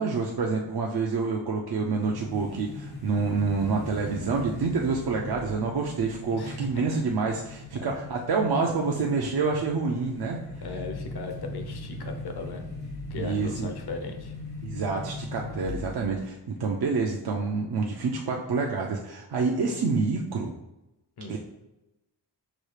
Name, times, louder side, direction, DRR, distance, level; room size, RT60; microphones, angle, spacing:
voice 1, 0.0-10.4 13.1-13.7 14.6-20.5 21.3-21.4, right 4 dB, 65° right, 0 dB, 0.6 m, -27 dB
sound 1, 2.0-16.2, left 2 dB, 80° left, 1.5 m, -39 dB
voice 2, 6.3-7.0 7.8-8.0 10.6-12.6 13.1-14.3 21.2-21.4, left 3 dB, 65° left, 4 dB, 0.8 m, -37 dB
5.9 x 2.4 x 3.2 m, 0.93 s
wide cardioid pair, 75°, 42 cm